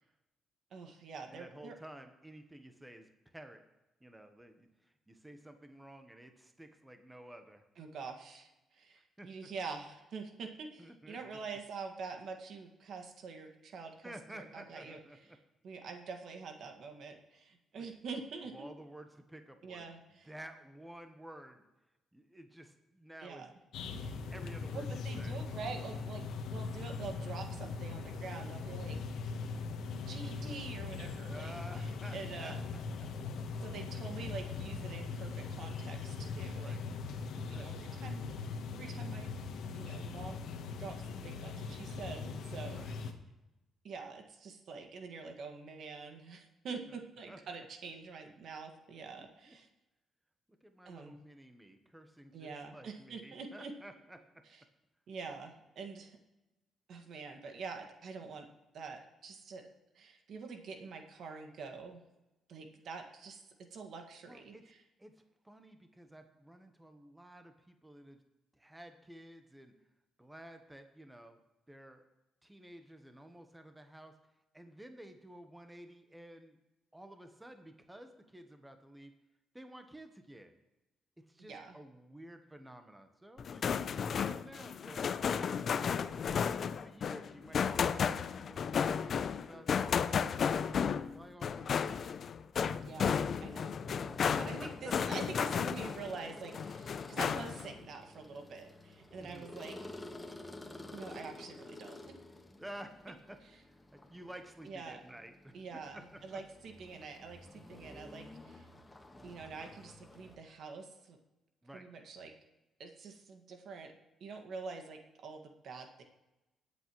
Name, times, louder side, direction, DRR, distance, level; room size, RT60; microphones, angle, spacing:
voice 1, 0.7-1.8 7.8-15.0 15.6-18.7 19.6-20.3 23.2-23.5 23.9-24.2 24.7-26.2 26.5-29.0 30.1-32.6 33.6-36.8 37.5-38.4 38.7-39.4 39.7-40.5 40.8-43.1 43.8-49.7 50.9-51.2 52.3-53.7 55.1-56.1 56.9-58.5 58.7-59.6 60.0-62.0 62.5-63.4 63.7-64.8 81.5-81.8 92.8-93.8 94.5-99.8 100.2-100.3 100.9-102.0 104.6-105.0 105.5-108.7 109.2-111.2 111.7-112.3 112.8-113.9 114.2-116.0, right 4 dB, 65° right, 4 dB, 1.9 m, -46 dB
voice 2, 1.3-3.6 4.0-7.6 9.0-9.3 10.8-11.4 14.0-15.4 17.7-17.9 18.5-19.9 20.2-21.6 22.1-23.5 24.3-25.4 31.3-32.5 33.0-33.1 36.5-36.8 37.3-37.7 42.7-42.9 46.9-47.0 47.3-47.4 49.2-49.5 50.6-54.2 64.2-64.6 65.0-68.2 68.5-69.8 70.2-71.4 71.7-72.0 72.4-74.1 74.5-76.6 76.9-79.1 79.5-80.6 81.3-85.6 86.2-92.2 94.3-95.1 99.2-99.5 102.6-105.6 105.9-106.4 111.6-111.9, right 1 dB, 10° right, 6 dB, 1.1 m, -52 dB
sound 1, 23.7-43.1, left 4 dB, 80° left, 1.1 m, -40 dB
sound 2, 83.4-96.1 96.5-97.7, left 7 dB, 55° left, 0.5 m, -33 dB
sound 3, 92.7-110.4, left 2 dB, 15° left, 1.5 m, -51 dB
20.0 x 8.3 x 3.1 m, 0.99 s
cardioid pair, 90°, 0 cm